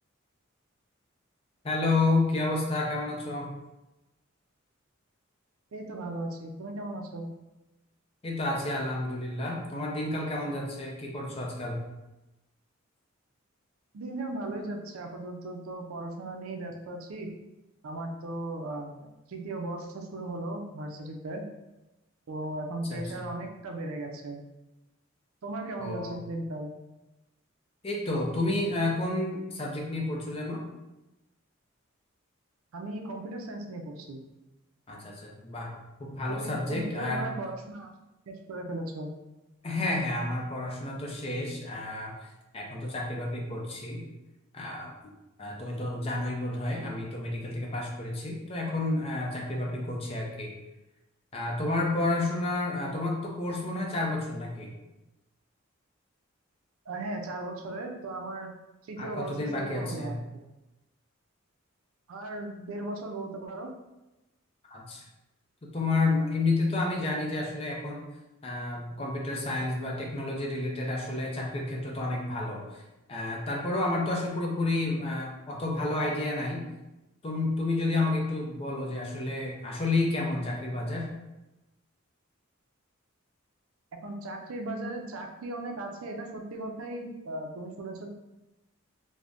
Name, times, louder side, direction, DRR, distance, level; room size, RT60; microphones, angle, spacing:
voice 1, 1.6-3.5 8.2-11.8 22.9-23.3 25.8-26.2 27.8-30.6 34.9-35.7 36.0-37.3 39.6-42.1 42.5-44.0 44.5-45.1 45.4-50.5 51.3-54.7 59.0-60.2 64.7-65.0 65.6-68.0 68.4-72.8 73.1-76.6 77.2-81.1, left 2 dB, 30° left, -1 dB, 0.5 m, -30 dB
voice 2, 5.7-7.3 13.9-17.3 17.8-21.4 22.3-24.4 25.4-26.7 32.7-34.2 36.3-37.9 38.3-39.1 56.9-58.5 58.8-60.4 62.1-63.7 84.0-88.1, right 2 dB, 85° right, 3 dB, 0.4 m, -37 dB
2.5 x 2.1 x 3.4 m, 1.0 s
head